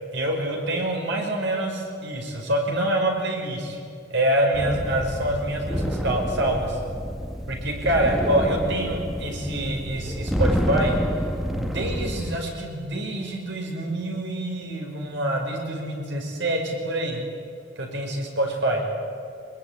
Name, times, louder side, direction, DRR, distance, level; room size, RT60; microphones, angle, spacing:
voice 1, 0.0-3.8 4.1-6.8 7.5-11.0 11.5-17.2 17.8-18.9, right 1 dB, 65° right, 1 dB, 5.5 m, -26 dB
sound 1, 4.5-12.4, equal, ahead, 1.5 m, -28 dB
22.0 x 21.5 x 9.5 m, 2.3 s
head